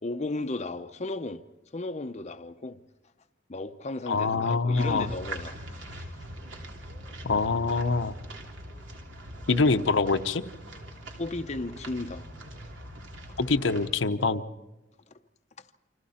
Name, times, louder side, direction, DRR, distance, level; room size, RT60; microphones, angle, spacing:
voice 1, 0.0-1.4 1.7-2.8 3.5-6.1 11.2-12.3, left 2 dB, 35° left, 0.7 m, -35 dB
voice 2, 4.1-5.1 7.2-8.1 9.5-10.4 13.4-14.4, left 4 dB, 85° left, 0.9 m, -25 dB
sound 1, 4.7-13.9, right 1 dB, 80° right, 3.1 m, -42 dB
28.5 x 26.0 x 4.3 m
head